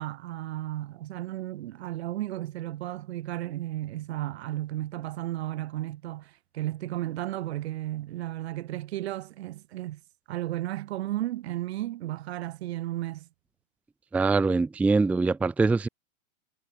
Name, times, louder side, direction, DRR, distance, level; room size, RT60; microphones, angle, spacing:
voice 1, 0.0-10.0 10.3-13.3, right 15 dB, 50° right, 3.9 m, -34 dB
voice 2, 14.1-15.9, right 3 dB, 5° right, 0.9 m, -23 dB
supercardioid pair, 170°, 41 cm